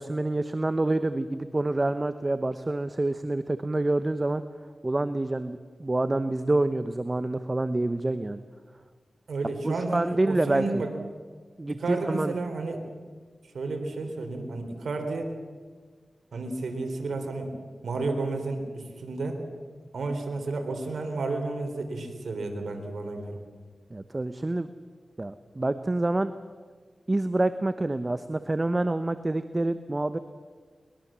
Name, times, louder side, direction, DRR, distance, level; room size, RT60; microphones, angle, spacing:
voice 1, 0.0-4.4 4.8-8.4 9.6-10.8 11.6-12.3 23.9-24.7 25.2-26.3 27.1-30.2, right 2 dB, 30° right, 11 dB, 1.0 m, -27 dB
voice 2, 9.3-10.9 11.7-12.8 13.5-15.3 16.3-17.5 17.8-19.4 19.9-23.4, right 3 dB, 90° right, 4 dB, 3.5 m, -32 dB
23.0 x 21.5 x 7.5 m, 1.5 s
cardioid pair, 50°, 0 cm